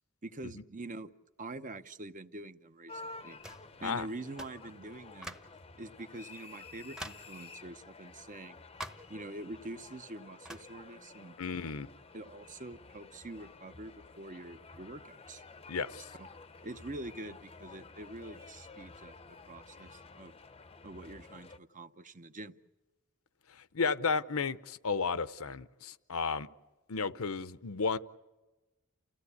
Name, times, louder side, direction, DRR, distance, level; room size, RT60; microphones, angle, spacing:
voice 1, 0.2-1.1 1.4-3.4 3.8-5.4 5.8-8.6 9.1-11.4 12.1-15.4 16.2-16.3 16.6-19.2 19.5-20.4 20.8-22.6, right 2 dB, 35° right, 0.9 m, -45 dB
sound 1, 2.9-21.6, left 3 dB, 25° left, 0.7 m, -52 dB
sound 2, 3.4-3.7 4.4-4.6 5.2-5.6 6.2-6.3 7.0-7.3 8.8-9.1 10.4-10.7, equal, 5° right, 1.0 m, -45 dB
voice 2, 11.4-11.9 15.7-16.1 23.5-26.5 26.9-28.0, left 5 dB, 75° left, 0.8 m, -33 dB
29.5 x 16.0 x 8.3 m
head